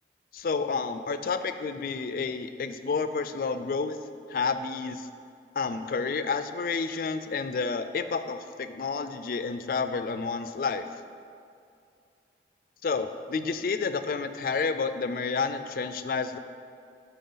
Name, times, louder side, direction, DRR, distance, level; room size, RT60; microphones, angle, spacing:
voice 1, 0.3-4.0 4.3-5.1 5.6-10.8 12.8-16.4, left 4 dB, 50° left, 10 dB, 0.3 m, -30 dB
9.2 x 4.3 x 3.9 m, 2.5 s
head